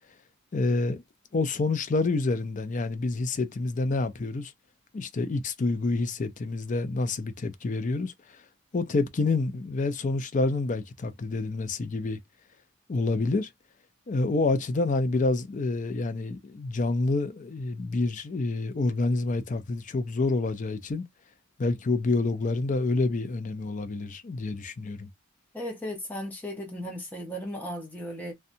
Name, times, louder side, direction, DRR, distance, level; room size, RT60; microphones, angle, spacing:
voice 1, 0.5-1.0 1.3-4.5 4.9-8.4 8.7-12.2 12.9-13.5 14.1-21.1 21.6-25.1, left 3 dB, 35° left, 0.4 m, -28 dB
voice 2, 25.5-28.3, equal, 10° left, 0.8 m, -36 dB
2.7 x 2.2 x 2.6 m
head